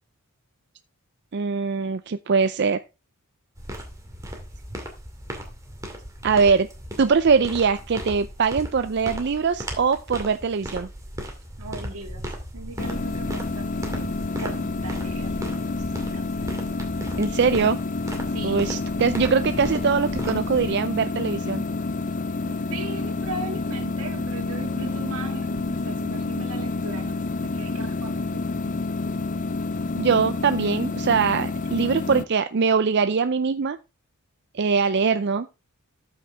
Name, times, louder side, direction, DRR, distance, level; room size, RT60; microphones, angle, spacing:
voice 1, 1.3-2.8 6.2-6.7 7.0-10.9 17.2-17.8 18.4-21.6 30.0-33.8 34.5-35.5, right 5 dB, 50° right, 0.5 m, -22 dB
sound 1, 3.6-20.7, equal, 15° right, 2.3 m, -36 dB
voice 2, 11.6-12.3 12.5-15.7 16.0-16.4 18.3-19.6 19.8-19.9 22.4-28.4, right 2 dB, 80° right, 2.3 m, -39 dB
sound 2, 12.8-32.3, left 3 dB, 35° left, 0.4 m, -29 dB
13.0 x 6.5 x 3.4 m
head